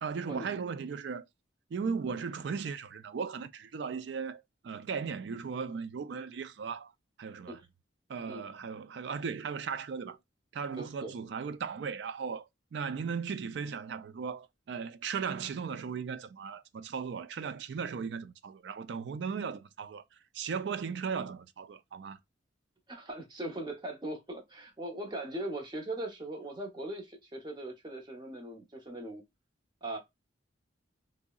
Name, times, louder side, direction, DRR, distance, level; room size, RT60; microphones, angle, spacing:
voice 1, 0.0-1.3 1.7-6.9 7.2-7.6 8.1-10.2 10.5-20.0 20.3-22.2, right 6 dB, 70° right, 0.3 m, -37 dB
voice 2, 10.8-11.1 22.9-29.2 29.8-30.0, right 1 dB, 25° right, 0.7 m, -39 dB
3.6 x 2.0 x 2.2 m
head